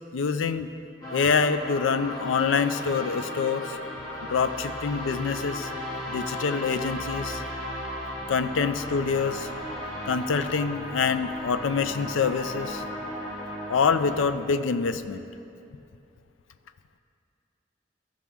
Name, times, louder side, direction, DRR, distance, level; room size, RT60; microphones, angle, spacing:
voice 1, 0.1-0.7 1.1-3.8 4.3-5.7 6.1-7.4 8.3-9.5 10.1-12.8 13.7-15.2, left 5 dB, 90° left, 11 dB, 0.4 m, -26 dB
sound 1, 1.0-14.3, left 1 dB, 20° left, 1.7 m, -35 dB
15.0 x 6.1 x 3.5 m, 2.6 s
head